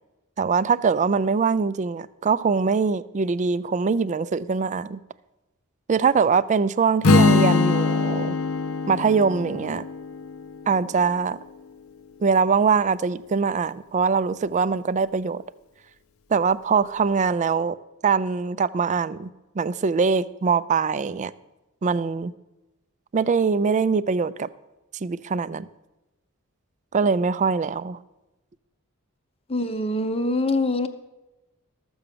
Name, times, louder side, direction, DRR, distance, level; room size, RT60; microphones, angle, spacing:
voice 1, 0.4-5.0 5.9-8.4 8.9-9.8 10.7-11.4 12.2-15.4 16.3-17.8 18.0-19.3 19.6-21.3 21.8-22.3 23.1-24.5 25.0-25.7 26.9-28.0, right 5 dB, 35° right, 0.4 m, -22 dB
Strum, 7.0-11.2, left 4 dB, 75° left, 0.8 m, -22 dB
voice 2, 29.5-30.9, left 2 dB, 30° left, 0.8 m, -24 dB
13.5 x 7.1 x 6.8 m
head